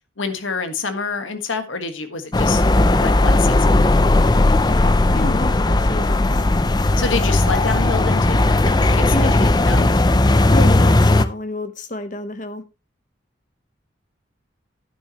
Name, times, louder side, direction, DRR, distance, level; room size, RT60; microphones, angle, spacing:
voice 1, 0.2-2.6 3.0-3.7 7.0-9.1 9.6-9.9, left 4 dB, 90° left, 1.6 m, -27 dB
sound 1, 2.3-11.2, left 2 dB, 20° left, 0.5 m, -16 dB
voice 2, 5.1-6.5 9.1-9.4 10.5-12.6, left 1 dB, 40° left, 1.0 m, -29 dB
10.5 x 9.8 x 3.0 m
head